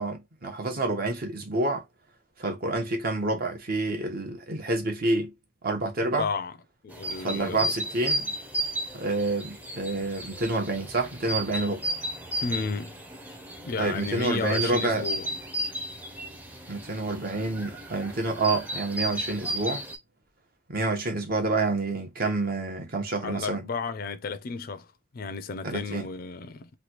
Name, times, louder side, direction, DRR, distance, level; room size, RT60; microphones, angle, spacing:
voice 1, 0.0-1.8 2.4-5.3 5.6-6.3 7.2-8.3 8.9-11.8 13.8-15.1 16.7-19.8 20.7-23.6 25.6-26.1, right 2 dB, 55° right, 0.9 m, -28 dB
voice 2, 6.0-6.5 6.8-7.7 12.4-12.9 13.6-15.3 23.2-24.9 25.1-26.7, left 4 dB, 55° left, 0.4 m, -33 dB
sound 1, 6.9-20.0, right 1 dB, 10° right, 0.6 m, -34 dB
3.2 x 2.3 x 2.9 m
head